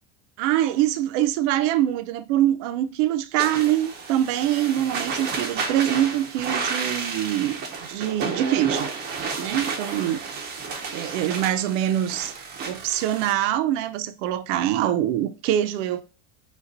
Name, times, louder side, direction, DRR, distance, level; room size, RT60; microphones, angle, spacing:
voice 1, 0.4-8.9 9.4-10.2 10.9-12.3 12.6-16.0, right 12 dB, 70° right, 0.5 m, -24 dB
sound 1, 3.4-13.3, right 4 dB, 25° right, 0.6 m, -31 dB
5.1 x 2.3 x 3.9 m
cardioid pair, 175°, 38 cm